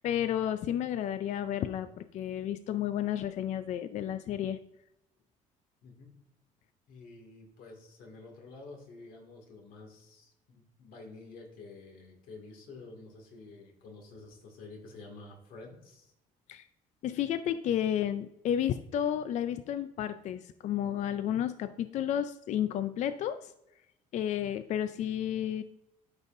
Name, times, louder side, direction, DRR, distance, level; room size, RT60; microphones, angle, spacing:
voice 1, 0.0-4.6 16.5-16.7 17.0-23.5 24.1-25.6, left 10 dB, 55° left, 12 dB, 0.4 m, -32 dB
voice 2, 5.8-6.2 6.9-16.1, left 3 dB, 75° left, 2 dB, 2.1 m, -50 dB
12.0 x 5.4 x 2.6 m, 0.85 s
cardioid pair, 125°, 15 cm